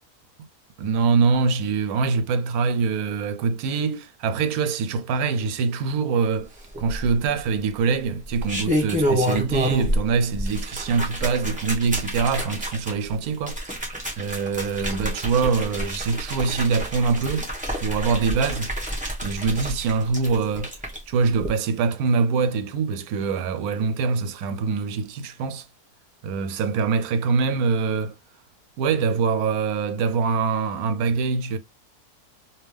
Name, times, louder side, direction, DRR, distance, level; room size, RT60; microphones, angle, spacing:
voice 1, 0.8-13.9 14.2-17.5 17.8-18.7 19.2-20.7 21.1-25.7 26.2-28.2 28.8-31.6, right 5 dB, 75° right, 1.0 m, -24 dB
sound 1, 6.7-7.4 8.2-10.1 10.3-21.0 21.4-21.5, equal, 5° right, 0.9 m, -28 dB
3.4 x 2.7 x 3.1 m
omnidirectional pair, 1.6 m